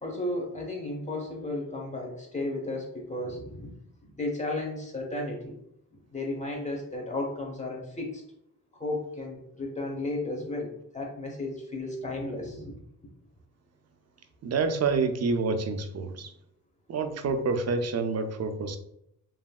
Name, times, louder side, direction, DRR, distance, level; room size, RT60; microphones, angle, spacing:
voice 1, 0.0-3.8 4.0-5.6 5.9-8.2 8.8-12.8, left 2 dB, 20° left, 0 dB, 1.1 m, -34 dB
voice 2, 14.4-16.3 16.9-18.8, right 4 dB, 40° right, 7 dB, 0.5 m, -28 dB
3.0 x 2.6 x 2.3 m, 0.78 s
supercardioid pair, 50°, 39 cm